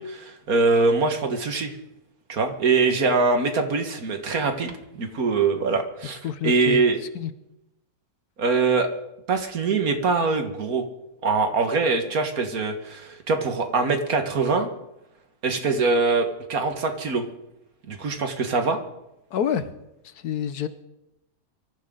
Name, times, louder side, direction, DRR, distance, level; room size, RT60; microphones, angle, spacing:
voice 1, 0.0-1.7 2.3-7.0 8.4-8.9 9.3-10.8 11.2-14.7 15.4-17.3 17.9-18.8, right 4 dB, 70° right, 6 dB, 2.0 m, -23 dB
voice 2, 6.2-6.8 7.1-7.3 19.3-19.7 20.0-20.7, left 9 dB, 80° left, 12 dB, 1.4 m, -27 dB
23.5 x 14.5 x 3.9 m, 0.87 s
omnidirectional pair, 1.6 m